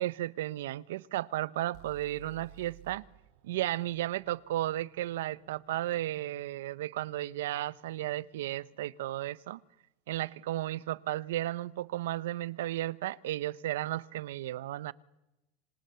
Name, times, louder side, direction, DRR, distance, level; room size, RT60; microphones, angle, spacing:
voice 1, 0.0-3.0 3.4-9.6 10.1-14.9, right 14 dB, 85° right, 0.9 m, -34 dB
sound 1, 1.7-5.7, right 16 dB, 50° right, 2.1 m, -56 dB
27.0 x 26.5 x 7.0 m
supercardioid pair, 165°, 0 cm